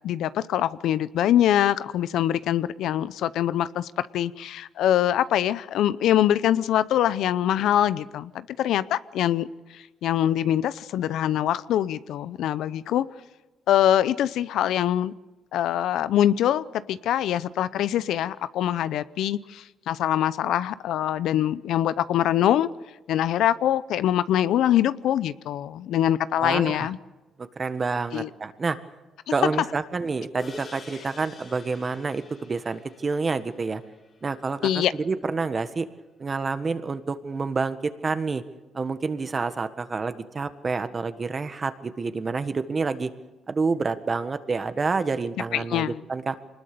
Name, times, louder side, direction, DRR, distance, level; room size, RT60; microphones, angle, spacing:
voice 1, 0.0-9.5 9.7-13.1 13.7-15.1 15.5-22.7 23.1-27.0 28.1-28.3 34.6-34.9 45.5-46.0, left 11 dB, 80° left, 16 dB, 0.6 m, -24 dB
voice 2, 26.4-26.9 27.4-28.8 29.3-33.8 34.2-35.9 36.2-37.8 38.0-38.4 38.7-43.1 43.5-46.4, right 4 dB, 35° right, 11 dB, 1.5 m, -28 dB
sound 1, 30.4-35.0, left 3 dB, 50° left, 4.8 m, -46 dB
24.0 x 20.0 x 6.8 m, 1.1 s
cardioid pair, 90°, 0 cm